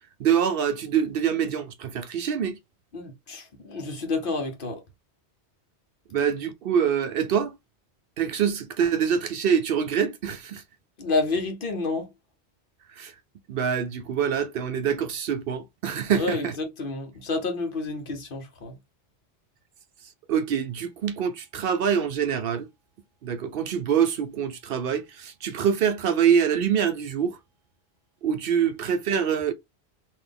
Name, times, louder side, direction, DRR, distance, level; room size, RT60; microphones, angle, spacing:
voice 1, 0.2-2.6 6.1-7.6 8.2-10.6 12.9-13.1 13.5-16.6 20.3-22.7 23.2-27.4 28.2-29.5, right 8 dB, 65° right, 0.7 m, -25 dB
voice 2, 2.9-4.8 11.0-12.1 16.1-18.7, left 3 dB, 55° left, 1.0 m, -29 dB
3.9 x 2.7 x 3.4 m
omnidirectional pair, 1.1 m